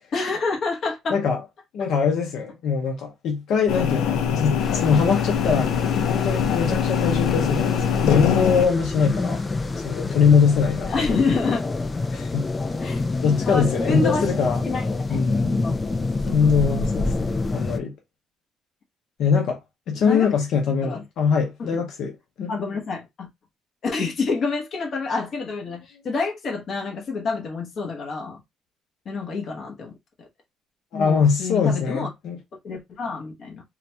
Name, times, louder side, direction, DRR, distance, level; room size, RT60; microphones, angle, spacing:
voice 1, 0.1-1.2 10.9-11.7 12.8-13.0 13.5-14.3 14.6-15.2 15.6-15.8 16.2-16.5 19.9-20.3 20.8-21.0 21.6-21.8 22.5-23.3 23.8-28.4 29.0-30.3 30.9-32.1 32.5-33.6, left 4 dB, 40° left, 1.0 m, -28 dB
voice 2, 1.1-1.4 1.7-5.7 6.1-9.4 9.8-11.1 12.1-12.4 13.2-14.6 15.1-15.6 16.3-17.9 19.2-19.6 19.9-22.1 22.4-22.5 30.9-32.4, left 6 dB, 60° left, 0.8 m, -22 dB
sound 1, 3.7-8.7, left 7 dB, 85° left, 0.5 m, -23 dB
sound 2, 4.6-17.8, left 3 dB, 15° left, 0.3 m, -27 dB
3.9 x 2.3 x 2.8 m
cardioid pair, 160°, 0 cm